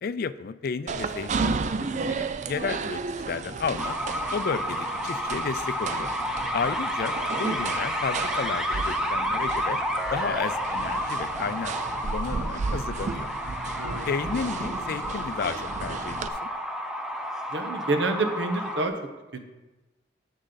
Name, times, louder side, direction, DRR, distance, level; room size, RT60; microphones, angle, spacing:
voice 1, 0.0-4.0 4.3-6.1 6.5-9.8 10.1-11.7 12.0-13.3 14.1-16.5, left 5 dB, 55° left, 14 dB, 0.4 m, -32 dB
sound 1, 0.9-16.3, right 4 dB, 40° right, 0.4 m, -33 dB
sound 2, 3.8-18.9, equal, 5° right, 0.7 m, -30 dB
voice 2, 13.8-14.1 17.5-19.0 19.3-19.4, right 2 dB, 80° right, 6 dB, 1.0 m, -28 dB
9.9 x 7.4 x 4.0 m, 1.2 s
head